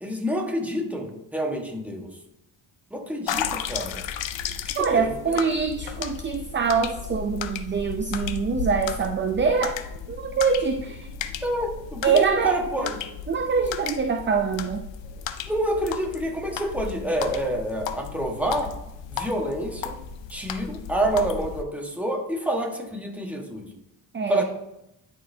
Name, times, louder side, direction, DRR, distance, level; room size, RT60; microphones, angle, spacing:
voice 1, 0.0-2.1 2.9-3.9 4.7-5.1 11.4-12.9 15.5-18.7 19.1-20.0 20.3-23.7 24.3-24.4, right 1 dB, 5° right, 0 dB, 1.4 m, -28 dB
sound 1, 3.3-21.6, left 7 dB, 80° left, 0.6 m, -34 dB
voice 2, 4.8-9.8 10.1-11.1 12.0-12.9 13.3-14.8 24.1-24.4, right 5 dB, 25° right, 6 dB, 0.5 m, -24 dB
11.0 x 4.2 x 2.7 m, 0.85 s
cardioid pair, 80°, 44 cm